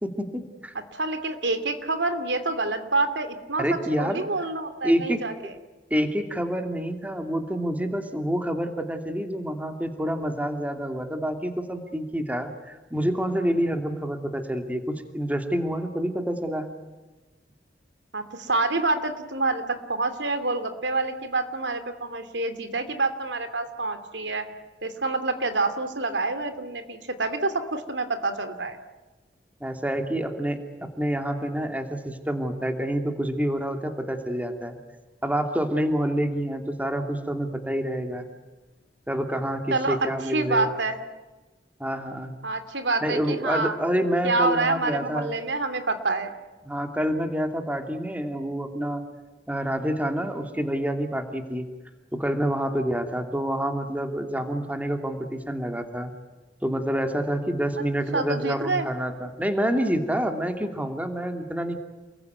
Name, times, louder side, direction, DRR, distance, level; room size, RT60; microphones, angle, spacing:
voice 1, 0.0-0.7 3.6-4.2 4.8-5.3 5.9-14.8 15.1-16.7 29.6-30.6 31.0-34.8 35.2-38.3 39.1-40.7 41.8-42.3 43.0-45.3 46.6-49.0 49.5-51.7 52.1-56.1 56.6-61.8, equal, 10° right, 5 dB, 2.6 m, -27 dB
voice 2, 0.7-3.6 4.0-5.5 18.1-24.5 24.8-28.8 39.7-41.0 42.4-43.7 44.2-46.3 58.1-58.9, right 3 dB, 80° right, 9 dB, 2.9 m, -27 dB
29.0 x 21.5 x 9.6 m, 1.2 s
head